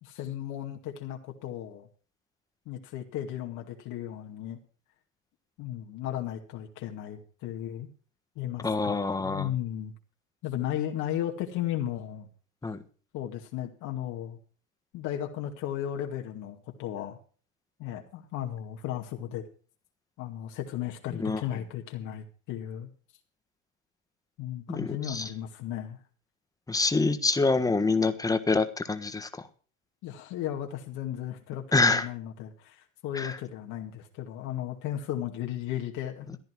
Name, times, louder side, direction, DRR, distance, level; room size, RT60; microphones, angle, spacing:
voice 1, 0.0-1.9 2.7-4.6 5.6-7.9 8.4-9.9 10.4-12.3 13.1-14.4 14.9-17.2 17.8-19.5 20.2-22.9 24.4-26.0 30.0-36.4, left 11 dB, 50° left, 2 dB, 2.3 m, -35 dB
voice 2, 8.6-9.5 12.6-12.8 21.1-21.4 24.7-25.3 26.7-29.4 31.7-32.1 33.1-33.4, left 3 dB, 10° left, 9 dB, 1.5 m, -26 dB
15.0 x 10.5 x 4.8 m, 0.39 s
supercardioid pair, 125°, 39 cm